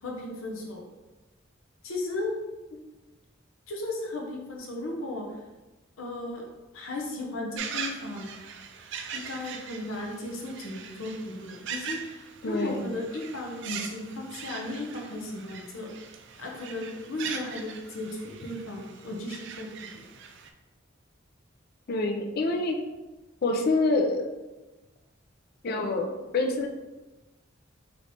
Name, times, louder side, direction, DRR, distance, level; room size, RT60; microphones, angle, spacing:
voice 1, 0.0-0.9 1.8-2.4 3.7-5.2 6.0-6.5 6.7-8.3 9.1-15.9 16.4-20.1, left 2 dB, 90° left, -1 dB, 0.8 m, -35 dB
sound 1, 7.6-20.5, right 6 dB, 60° right, 0.4 m, -41 dB
voice 2, 12.4-12.9 21.9-22.8 23.4-24.3 25.6-26.7, left 2 dB, 50° left, 4 dB, 0.4 m, -26 dB
3.1 x 3.1 x 4.0 m, 1.1 s
head